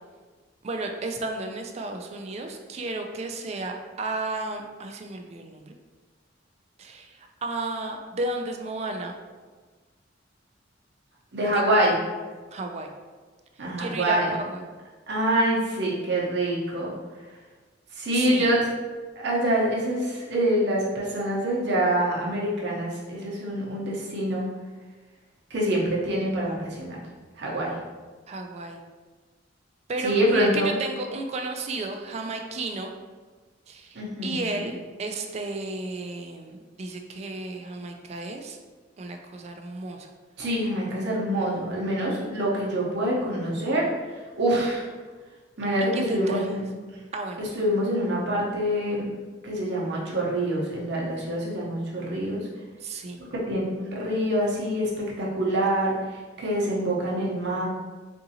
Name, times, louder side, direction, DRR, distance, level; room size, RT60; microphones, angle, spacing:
voice 1, 0.6-5.7 6.8-9.2 11.5-11.6 12.5-12.9 13.8-14.7 18.1-18.5 28.3-28.8 29.9-32.9 33.7-38.6 39.0-40.1 45.9-46.6 47.1-47.4 52.8-53.2, right 2 dB, 35° right, 4 dB, 0.3 m, -33 dB
voice 2, 11.3-11.9 13.6-14.3 15.1-16.9 18.0-18.7 19.1-24.5 25.5-27.0 27.4-27.7 30.0-30.7 33.9-34.5 40.4-43.8 44.4-44.8 45.6-46.6 47.4-49.1 49.4-52.4 53.3-54.9 55.2-55.9 56.4-57.6, right 1 dB, 65° right, -4 dB, 0.8 m, -25 dB
3.7 x 2.6 x 2.8 m, 1.4 s
head